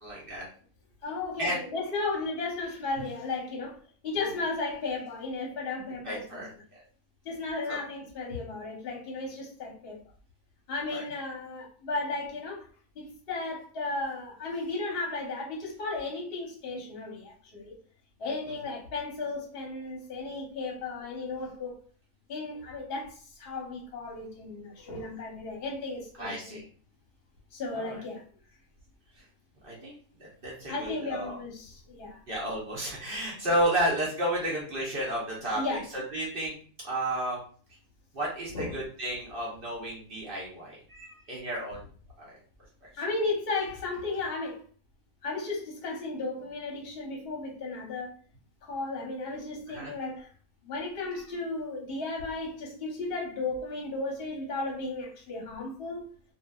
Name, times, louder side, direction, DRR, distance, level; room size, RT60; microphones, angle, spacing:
voice 1, 0.0-0.5 1.4-1.6 6.0-6.8 7.7-7.8 10.9-11.0 26.2-26.6 27.7-28.0 29.6-31.4 32.3-36.5 36.8-37.4 38.1-41.8 42.2-42.3 49.7-49.9, right 1 dB, 50° right, -4 dB, 0.8 m, -32 dB
voice 2, 1.0-3.8 4.0-6.4 7.2-10.0 10.7-12.7 12.9-17.7 18.2-21.8 22.3-26.6 27.5-28.2 30.7-32.2 35.5-35.8 38.5-38.8 43.0-44.6 45.2-48.1 48.6-50.3 50.6-56.1, left 3 dB, 50° left, -2 dB, 0.9 m, -34 dB
2.6 x 2.4 x 2.2 m, 0.43 s
omnidirectional pair, 1.5 m